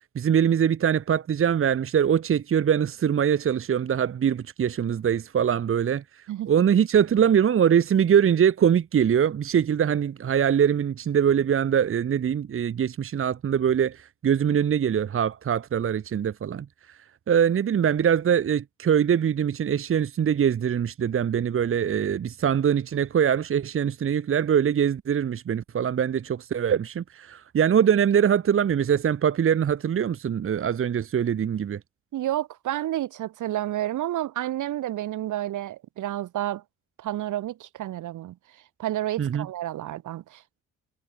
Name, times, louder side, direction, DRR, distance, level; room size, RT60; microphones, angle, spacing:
voice 1, 0.1-17.0 17.3-31.8 39.2-39.5, right 8 dB, 45° right, 1.2 m, -23 dB
voice 2, 32.1-36.6 37.0-38.4 38.8-40.6, right 13 dB, 80° right, 4.2 m, -30 dB
cardioid pair, 90°, 30 cm